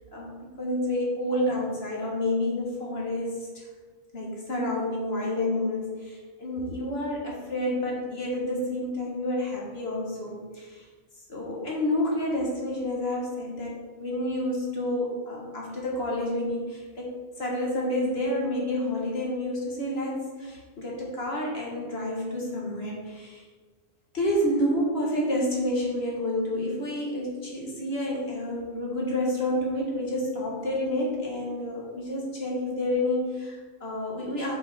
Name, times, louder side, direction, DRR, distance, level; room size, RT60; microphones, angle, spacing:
voice 1, 0.1-3.7 4.1-10.9 11.3-17.1 17.4-23.4 24.1-34.5, left 1 dB, 45° left, -3 dB, 1.7 m, -29 dB
7.0 x 5.1 x 4.2 m, 1.4 s
omnidirectional pair, 1.5 m